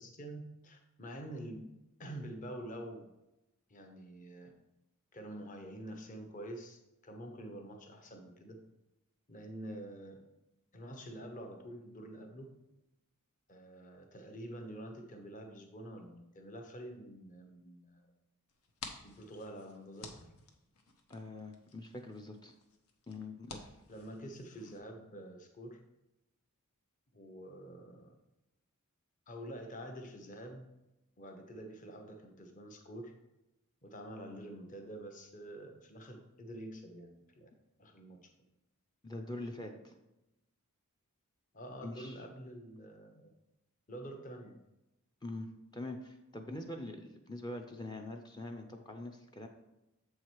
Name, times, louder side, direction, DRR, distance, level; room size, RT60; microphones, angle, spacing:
voice 1, 0.0-1.7 2.0-3.1 3.7-4.5 5.1-8.6 9.3-10.2 10.7-12.5 13.5-18.0 19.0-20.3 23.9-25.8 27.1-28.1 29.3-30.7 31.2-33.1 33.8-37.5 37.8-38.2 41.5-43.3 43.9-44.6, right 1 dB, 35° left, 4 dB, 0.9 m, -47 dB
sound 1, 18.5-24.8, left 4 dB, 75° left, 0.9 m, -53 dB
voice 2, 21.1-22.5 23.1-23.7 39.0-39.9 41.8-42.2 45.2-49.5, left 2 dB, 20° left, 3 dB, 0.5 m, -44 dB
7.3 x 4.8 x 4.5 m, 0.94 s
head